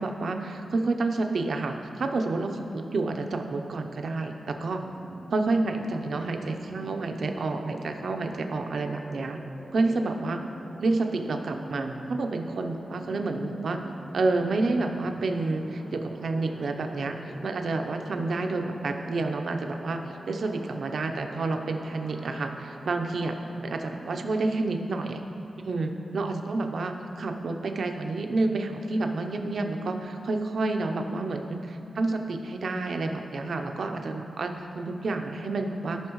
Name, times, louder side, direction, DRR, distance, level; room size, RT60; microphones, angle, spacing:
voice 1, 0.0-4.8 5.3-9.4 9.7-10.4 10.8-13.8 14.1-17.2 17.4-20.0 20.3-23.4 23.6-25.2 25.6-36.0, right 3 dB, 60° right, 4 dB, 0.7 m, -29 dB
sound 1, 4.8-24.3, right 1 dB, 25° right, 0.8 m, -45 dB
16.5 x 5.8 x 3.1 m, 2.7 s
wide cardioid pair, 160°, 0 cm